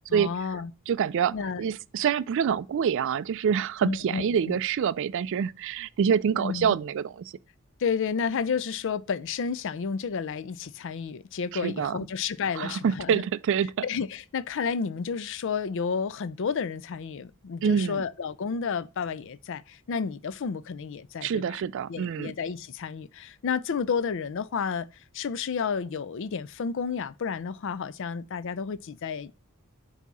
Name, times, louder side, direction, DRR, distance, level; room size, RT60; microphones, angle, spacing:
voice 1, 0.1-0.7 1.3-1.6 3.8-4.6 6.3-6.7 7.8-13.2 13.8-21.6 21.9-24.9 25.1-29.3, left 6 dB, 60° left, 0.4 m, -31 dB
voice 2, 0.9-7.3 11.5-12.0 12.6-13.8 17.6-18.0 21.2-22.3, right 7 dB, 60° right, 0.3 m, -26 dB
8.2 x 2.8 x 6.0 m
head